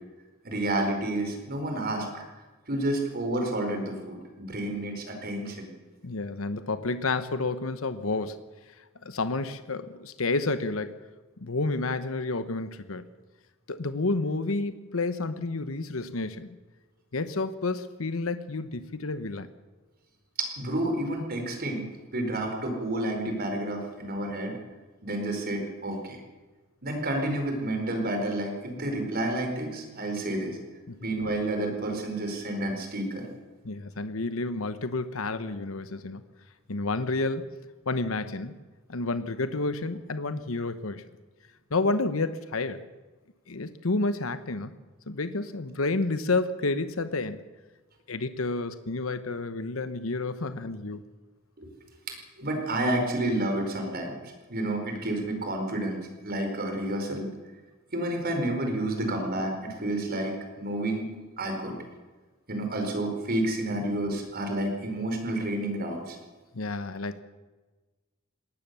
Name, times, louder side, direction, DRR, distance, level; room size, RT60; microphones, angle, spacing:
voice 1, 0.4-2.2 2.7-5.7 20.4-21.8 22.1-24.5 25.0-26.2 26.8-30.6 31.0-33.2 51.6-51.7 52.1-57.3 57.9-61.0 61.4-61.8 62.5-66.2, right 1 dB, 50° right, 4 dB, 4.7 m, -30 dB
voice 2, 6.0-8.4 8.7-11.0 11.4-13.0 13.7-16.6 17.1-19.5 25.6-25.7 30.9-31.1 33.6-36.2 36.7-37.5 37.9-38.6 38.9-41.1 41.7-42.8 43.5-44.8 45.1-47.5 48.1-51.0 63.7-63.8 66.5-67.2, left 3 dB, 80° left, 11 dB, 1.0 m, -30 dB
21.0 x 18.0 x 6.9 m, 1.2 s
head